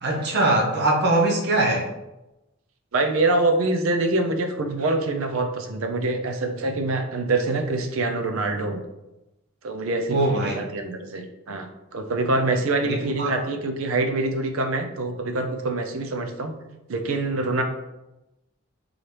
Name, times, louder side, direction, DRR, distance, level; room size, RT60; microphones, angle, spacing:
voice 1, 0.0-1.9 10.1-10.6 12.8-13.3, right 2 dB, 55° right, -1 dB, 0.8 m, -22 dB
voice 2, 2.9-8.8 9.6-16.6 16.9-17.6, right 2 dB, 80° right, 5 dB, 0.5 m, -25 dB
3.9 x 2.9 x 3.3 m, 0.96 s
head